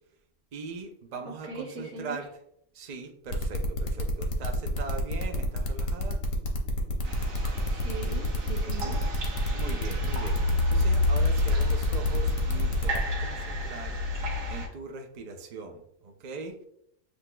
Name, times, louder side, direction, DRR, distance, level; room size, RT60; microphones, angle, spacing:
voice 1, 0.5-2.3 2.7-6.2 8.8-8.9 9.5-16.6, right 4 dB, 90° right, 4 dB, 0.3 m, -41 dB
voice 2, 1.4-2.2 7.7-9.0, right 4 dB, 50° right, -2 dB, 1.4 m, -40 dB
sound 1, 3.3-13.0, left 2 dB, 50° left, 0.8 m, -31 dB
sound 2, 7.0-14.7, left 2 dB, 70° right, 1.4 m, -29 dB
7.6 x 2.7 x 2.2 m, 0.72 s
omnidirectional pair, 1.5 m